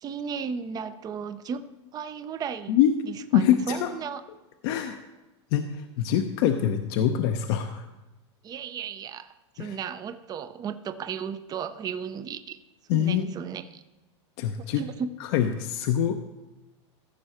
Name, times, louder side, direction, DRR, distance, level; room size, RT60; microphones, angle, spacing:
voice 1, 0.0-2.8 3.1-4.2 7.0-7.1 8.4-12.6 12.9-13.8 14.8-15.1, right 7 dB, 25° right, 11 dB, 0.6 m, -35 dB
voice 2, 3.3-3.9 4.6-5.0 5.5-7.9 9.6-9.8 12.9-13.3 14.4-14.8 15.2-16.2, left 10 dB, 60° left, 6 dB, 0.7 m, -24 dB
14.5 x 6.3 x 4.4 m, 1.1 s
hypercardioid pair, 115°, 15 cm